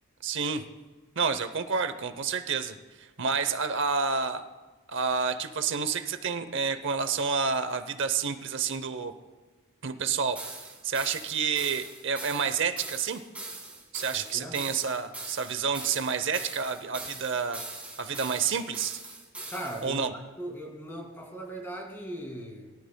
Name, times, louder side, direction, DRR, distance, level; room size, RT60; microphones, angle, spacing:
voice 1, 0.2-0.6 1.2-4.4 4.9-9.1 9.8-13.2 13.9-17.6 18.0-19.0 19.8-20.1, right 5 dB, 60° right, 10 dB, 0.7 m, -29 dB
sound 1, 10.4-19.9, right 2 dB, 5° right, 2.0 m, -42 dB
voice 2, 19.5-22.7, right 1 dB, 10° left, 1 dB, 2.3 m, -39 dB
22.0 x 13.0 x 2.3 m, 1.3 s
head